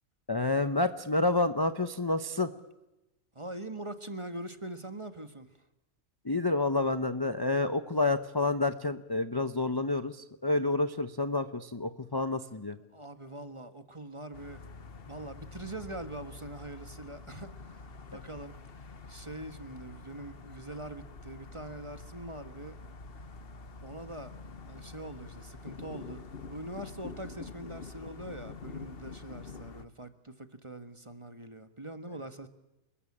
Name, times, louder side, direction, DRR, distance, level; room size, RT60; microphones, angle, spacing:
voice 1, 0.3-2.5 6.2-12.8 18.1-18.2, left 2 dB, 20° left, 10 dB, 0.8 m, -29 dB
voice 2, 3.3-5.5 12.9-14.6 15.1-22.8 23.8-24.3 24.7-32.5, right 1 dB, 20° right, 10 dB, 1.5 m, -43 dB
sound 1, 14.3-29.9, left 4 dB, 45° left, 1.2 m, -46 dB
28.5 x 21.0 x 8.7 m, 0.95 s
omnidirectional pair, 1.5 m